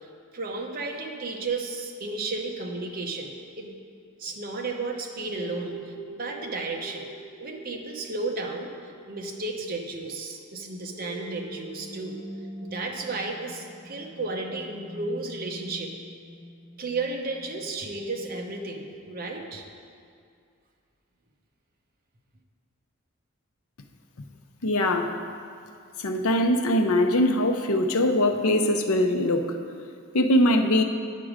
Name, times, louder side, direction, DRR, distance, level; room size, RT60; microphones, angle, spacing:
voice 1, 0.3-3.7 4.2-7.1 7.4-8.7 9.1-12.2 12.6-15.9 16.8-19.6, right 3 dB, 40° right, 1 dB, 0.9 m, -33 dB
sound 1, 5.3-18.4, right 1 dB, 30° left, 1.3 m, -44 dB
voice 2, 24.6-25.1 26.0-29.6 30.1-30.8, left 1 dB, 80° left, 5 dB, 0.7 m, -22 dB
9.1 x 6.0 x 5.0 m, 2.3 s
head